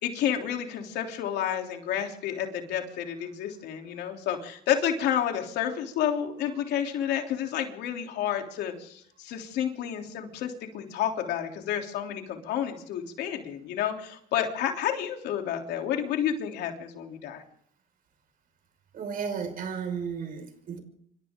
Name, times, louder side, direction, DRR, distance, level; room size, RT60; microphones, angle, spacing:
voice 1, 0.0-17.4, left 9 dB, 80° left, 3.4 m, -30 dB
voice 2, 18.9-20.8, right 6 dB, 60° right, 5.5 m, -34 dB
27.0 x 25.0 x 3.8 m
cardioid pair, 110°, 17 cm